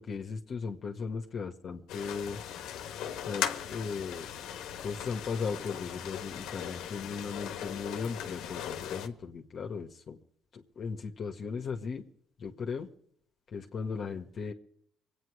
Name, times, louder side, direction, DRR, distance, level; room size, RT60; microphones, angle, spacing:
voice 1, 0.0-2.4 3.2-4.3 4.8-10.2 10.5-12.0 12.4-12.9 13.5-14.5, left 5 dB, 55° left, 2 dB, 1.6 m, -37 dB
sound 1, 1.9-9.1, left 9 dB, 85° left, 1.3 m, -38 dB
23.5 x 9.2 x 4.9 m, 0.66 s
cardioid pair, 85°, 0 cm